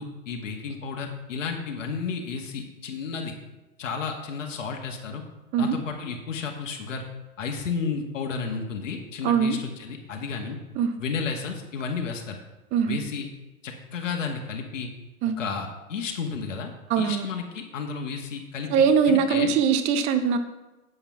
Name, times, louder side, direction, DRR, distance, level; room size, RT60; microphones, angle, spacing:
voice 1, 0.0-3.3 3.8-5.2 5.6-7.1 7.4-10.6 11.0-12.4 12.9-13.3 13.6-14.9 15.4-19.5, left 5 dB, 60° left, 2 dB, 1.9 m, -32 dB
voice 2, 9.2-9.6 10.8-10.9 12.7-13.0 15.2-15.4 16.9-17.3 18.7-20.4, right 6 dB, 15° right, 9 dB, 0.6 m, -21 dB
9.0 x 7.7 x 5.9 m, 1.1 s
figure-of-eight pair, 115°, 43 cm